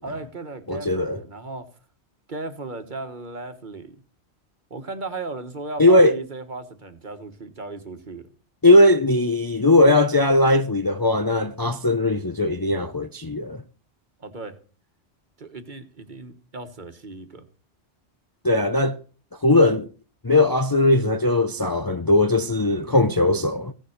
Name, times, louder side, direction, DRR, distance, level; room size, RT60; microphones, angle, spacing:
voice 1, 0.0-1.7 2.3-4.0 4.7-8.2 14.2-14.6 15.4-17.5, right 3 dB, 45° right, 1.5 m, -36 dB
voice 2, 0.7-1.2 5.8-6.2 8.6-13.6 18.4-19.0 19.4-19.9 20.2-23.7, left 2 dB, 25° left, 0.6 m, -19 dB
16.0 x 7.2 x 6.5 m
omnidirectional pair, 1.1 m